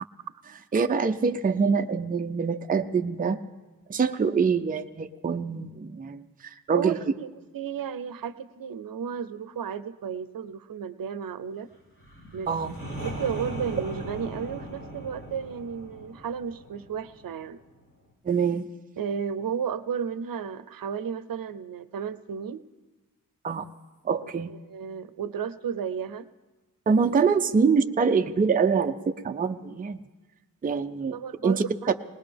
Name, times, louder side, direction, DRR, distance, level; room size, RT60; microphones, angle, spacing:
voice 1, 0.7-3.4 3.9-7.0 12.5-12.7 18.2-18.7 23.4-23.7 24.0-24.5 26.9-30.0 30.6-31.2 31.4-31.6, right 5 dB, 25° right, 7 dB, 0.4 m, -25 dB
voice 2, 6.7-11.7 12.3-12.5 13.0-17.6 19.0-22.6 24.2-26.3 30.7-30.8 31.1-31.9, right 7 dB, 75° right, 13 dB, 0.6 m, -33 dB
sound 1, 12.0-17.7, equal, 40° left, 3.6 m, -39 dB
20.0 x 19.5 x 3.4 m, 1.2 s
wide cardioid pair, 155°, 35 cm